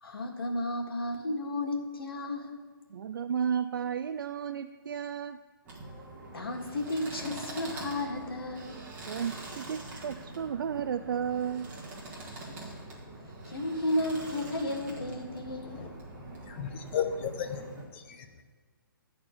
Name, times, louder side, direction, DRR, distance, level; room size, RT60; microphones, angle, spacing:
voice 1, 0.0-2.6 6.3-8.8 12.2-12.4 12.7-12.8 13.4-15.8, left 1 dB, 85° left, 2 dB, 1.8 m, -33 dB
voice 2, 2.9-5.4 9.1-11.7, right 8 dB, 65° right, 9 dB, 0.4 m, -33 dB
sound 1, 5.6-17.8, right 2 dB, 15° right, 1.6 m, -44 dB
voice 3, 16.5-17.6 17.9-18.4, left 8 dB, 30° left, 7 dB, 0.8 m, -34 dB
10.5 x 4.3 x 7.7 m, 1.5 s
hypercardioid pair, 155°, 12 cm